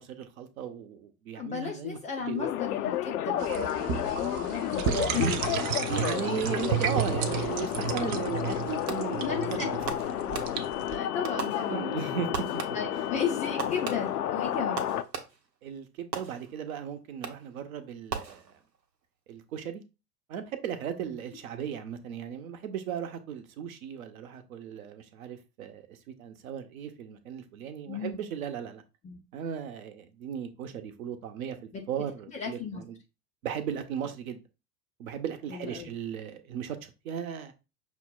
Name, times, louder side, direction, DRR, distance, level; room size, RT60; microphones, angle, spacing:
voice 1, 0.0-2.5 5.9-9.8 10.2-10.3 11.7-12.5 12.9-13.1 15.6-18.6 19.3-19.8 20.3-28.8 29.3-33.0 33.4-34.4 35.0-37.5, right 8 dB, 60° right, 0.9 m, -36 dB
voice 2, 1.3-5.3 7.9-8.0 9.2-9.5 10.8-11.9 12.7-14.8 21.0-21.1 27.9-28.1 29.0-29.2 31.7-31.8 32.3-32.8 35.5-35.9, left 6 dB, 15° left, 0.4 m, -34 dB
sound 1, 2.4-15.0, left 11 dB, 65° left, 0.5 m, -31 dB
sound 2, 3.4-11.0, right 8 dB, 35° right, 0.5 m, -32 dB
Fireworks, 8.9-9.3 9.9-10.9 11.2-12.0 12.3-13.0 13.6-15.6 16.1-16.7 17.2-17.6 18.1-18.8, right 6 dB, 85° right, 0.9 m, -39 dB
5.9 x 2.1 x 3.8 m
figure-of-eight pair, 90°, 49 cm